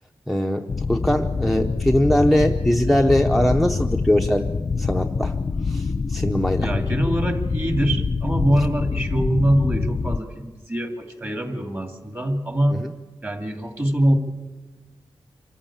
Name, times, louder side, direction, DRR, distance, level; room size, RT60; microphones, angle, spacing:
voice 1, 0.3-4.5 4.8-5.3 5.6-6.7 12.7-12.9, equal, ahead, 3 dB, 0.7 m, -21 dB
sound 1, 0.7-10.2, left 4 dB, 40° left, 0.6 m, -25 dB
voice 2, 6.6-12.8 13.2-14.1, right 1 dB, 25° right, 5 dB, 2.3 m, -23 dB
25.0 x 14.5 x 8.6 m, 1.2 s
wide cardioid pair, 120°, 10 cm